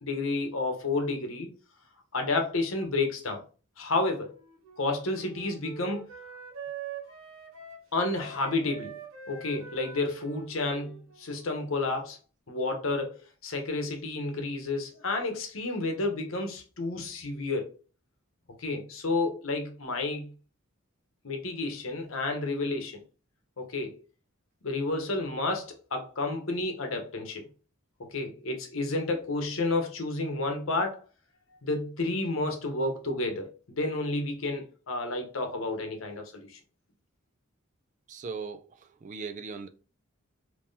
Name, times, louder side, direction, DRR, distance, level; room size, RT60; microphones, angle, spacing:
voice 1, 0.0-1.5 2.1-3.4 3.8-4.3 4.8-6.1 7.9-8.9 9.3-12.2 12.5-13.1 13.4-17.7 18.6-20.3 21.2-23.0 23.6-23.9 24.6-27.5 28.1-31.0 31.6-36.6, left 2 dB, 75° left, 0.9 m, -30 dB
Wind instrument woodwind instrument, 4.1-12.1, right 6 dB, 70° right, 1.0 m, -44 dB
voice 2, 38.1-39.7, right 5 dB, 35° right, 0.3 m, -39 dB
3.7 x 2.8 x 2.6 m
head